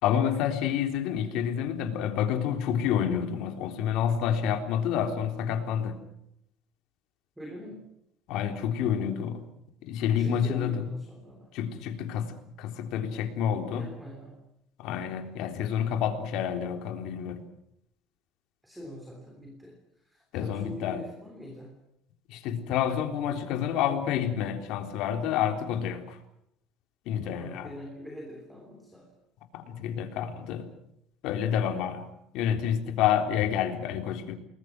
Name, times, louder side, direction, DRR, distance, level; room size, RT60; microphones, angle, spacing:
voice 1, 0.0-6.0 8.3-9.4 9.9-10.8 11.5-13.8 14.8-17.4 20.3-21.0 22.3-26.2 27.1-27.7 29.5-30.7 31.2-32.1 32.3-34.3, left 9 dB, 55° left, 5 dB, 3.7 m, -28 dB
voice 2, 7.4-7.9 10.2-11.5 13.7-14.4 18.6-21.8 27.2-29.1, left 1 dB, 5° right, 3 dB, 3.2 m, -43 dB
29.0 x 21.0 x 6.3 m, 0.78 s
cardioid pair, 175°, 0 cm